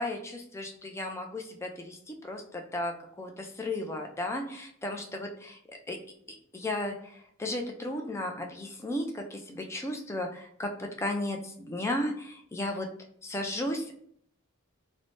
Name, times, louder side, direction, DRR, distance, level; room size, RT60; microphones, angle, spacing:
voice 1, 0.0-6.0 6.3-12.9 13.2-13.9, left 1 dB, 15° left, 2 dB, 0.4 m, -35 dB
3.2 x 2.1 x 2.6 m, 0.64 s
head